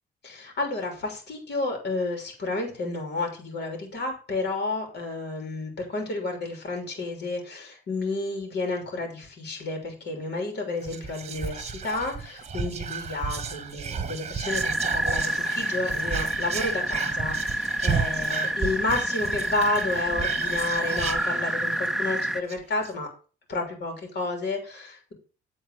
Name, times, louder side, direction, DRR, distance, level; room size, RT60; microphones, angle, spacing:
voice 1, 0.2-23.1 23.5-25.1, left 2 dB, 60° left, 3 dB, 3.3 m, -31 dB
Whispering, 10.8-21.9 22.2-22.3 22.5-22.9, right 6 dB, 30° right, 1.2 m, -33 dB
sound 1, 14.5-22.4, right 1 dB, ahead, 0.5 m, -28 dB
8.2 x 4.1 x 6.6 m, 0.37 s
cardioid pair, 90°, 20 cm